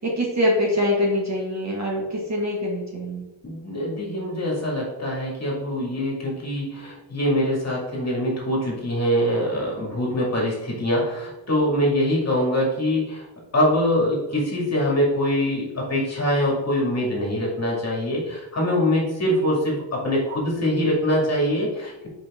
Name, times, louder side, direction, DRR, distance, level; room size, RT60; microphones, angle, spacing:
voice 1, 0.0-3.2, left 1 dB, 35° right, -3 dB, 1.9 m, -24 dB
voice 2, 3.4-13.3 13.5-22.1, equal, 35° left, -3 dB, 2.3 m, -23 dB
7.7 x 5.2 x 3.7 m, 0.99 s
wide cardioid pair, 175°, 44 cm